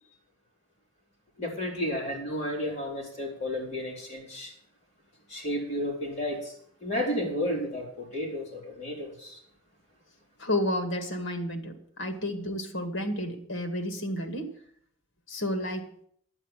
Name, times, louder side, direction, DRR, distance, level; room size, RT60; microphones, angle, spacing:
voice 1, 1.4-4.5 5.3-9.4, left 1 dB, 35° left, 4.2 m, -32 dB
voice 2, 10.4-14.5 15.3-16.0, left 1 dB, 65° left, 2.0 m, -31 dB
11.0 x 9.2 x 7.4 m
head